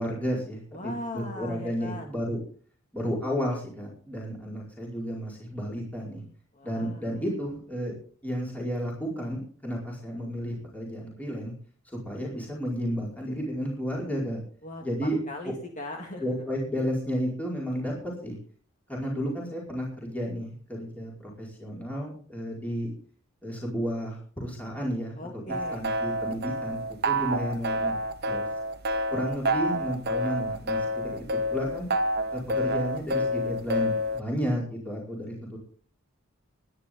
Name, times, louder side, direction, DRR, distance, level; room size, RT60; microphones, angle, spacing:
voice 1, 0.0-2.4 2.9-6.2 6.6-7.9 8.2-11.5 12.0-14.4 14.8-15.2 15.4-15.5 16.2-17.9 18.2-18.4 18.9-22.9 23.4-25.4 25.7-28.0 28.2-28.5 29.1-31.9 32.3-35.6, equal, 5° left, -4 dB, 4.9 m, -32 dB
voice 2, 0.7-2.1 6.5-7.2 14.6-16.4 25.2-25.8, left 1 dB, 35° left, 2 dB, 2.1 m, -39 dB
sound 1, 25.5-34.2, equal, 50° right, 1.3 m, -28 dB
24.5 x 10.5 x 3.8 m, 0.43 s
head